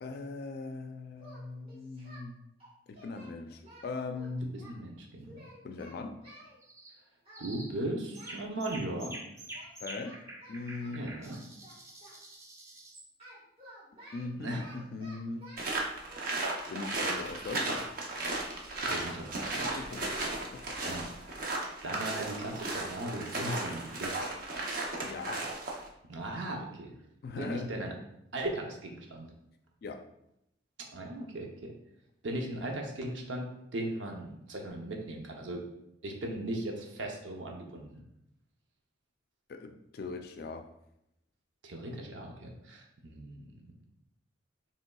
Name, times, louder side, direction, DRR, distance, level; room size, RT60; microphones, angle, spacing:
voice 1, 0.0-2.4 2.9-4.5 5.6-6.2 9.8-10.2 10.5-11.1 14.1-15.5 16.7-17.9 19.8-21.0 25.0-25.5 27.2-27.7 29.8-30.0 39.5-40.7, left 3 dB, 55° left, 6 dB, 0.3 m, -40 dB
Singing, 1.2-2.3 2.6-4.7 5.2-6.5 7.2-7.5 7.7-8.5 9.5-9.7 10.0-12.2 13.2-15.7 16.1-16.2, equal, 30° right, 1.5 m, -53 dB
voice 2, 4.5-5.4 7.4-9.1 10.9-11.4 14.4-14.8 18.8-19.7 20.9-21.1 21.8-24.1 26.1-26.9 27.4-27.9 28.3-29.3 30.9-31.7 32.2-35.6 36.0-38.0 41.6-43.5, right 1 dB, 80° right, 1 dB, 0.7 m, -38 dB
sound 1, 6.6-7.0 7.3-7.8 8.1-13.1, right 1 dB, 15° right, 0.5 m, -47 dB
sound 2, 15.6-25.9, right 2 dB, 50° right, 0.7 m, -35 dB
5.3 x 3.4 x 2.3 m, 0.81 s
head